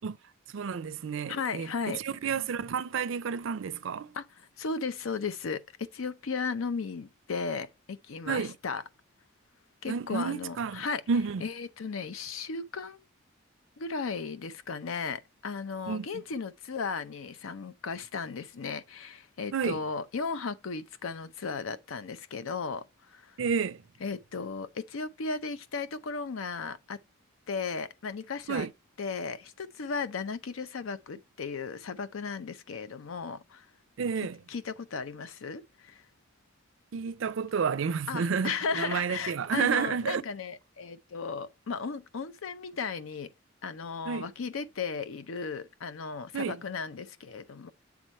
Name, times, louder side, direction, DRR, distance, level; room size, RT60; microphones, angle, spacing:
voice 1, 0.5-4.1 8.3-8.5 9.9-11.4 15.9-16.1 19.5-19.8 23.4-23.8 28.5-28.7 34.0-34.4 36.9-40.2 44.1-44.3 46.3-46.6, right 6 dB, 70° right, 0.4 m, -30 dB
voice 2, 1.3-2.0 4.1-8.8 9.8-11.0 11.4-13.0 13.8-23.4 24.0-27.0 27.5-28.7 29.0-33.7 34.5-36.1 38.1-43.3 43.6-47.7, left 5 dB, 80° left, 0.6 m, -35 dB
7.7 x 3.6 x 4.3 m
head